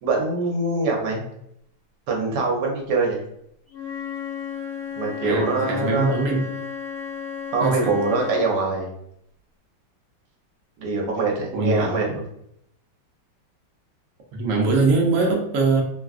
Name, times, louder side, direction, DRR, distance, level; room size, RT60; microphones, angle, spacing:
voice 1, 0.0-1.2 2.1-3.2 5.0-6.2 7.5-8.9 10.8-12.2, right 3 dB, 65° right, -1 dB, 1.2 m, -23 dB
Wind instrument woodwind instrument, 3.7-8.5, left 7 dB, 80° left, 0.4 m, -33 dB
voice 2, 5.2-6.4 7.6-7.9 11.5-12.0 14.3-15.8, right 3 dB, 90° right, 0 dB, 0.7 m, -22 dB
3.3 x 2.3 x 2.4 m, 0.75 s
omnidirectional pair, 2.2 m